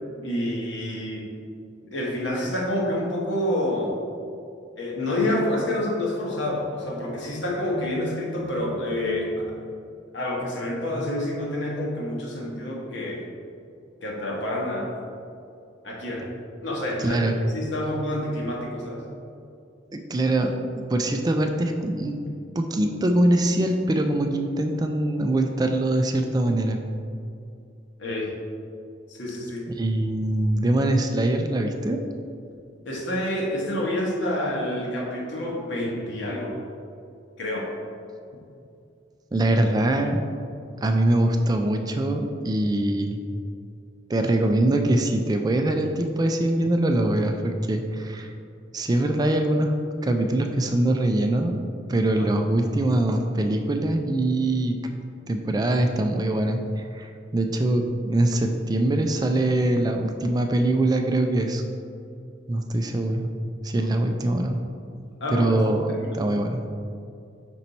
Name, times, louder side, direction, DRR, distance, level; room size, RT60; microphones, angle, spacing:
voice 1, 0.1-1.3 1.8-3.9 4.8-9.5 10.1-13.3 14.0-14.9 15.8-16.3 16.6-19.1 28.0-28.3 29.1-29.7 32.8-36.5 37.4-37.7 52.2-52.3 63.8-64.1 65.2-65.6 66.0-66.2, left 1 dB, 65° left, -3 dB, 1.2 m, -28 dB
voice 2, 17.0-17.4 19.9-22.2 22.6-26.8 29.8-32.0 39.3-40.2 40.8-43.2 44.1-48.3 48.7-49.7 50.0-51.6 51.9-54.8 55.3-61.6 62.5-63.3 63.6-64.6 65.3-66.6, right 1 dB, 20° right, 4 dB, 0.3 m, -23 dB
5.3 x 4.4 x 4.0 m, 2.4 s
head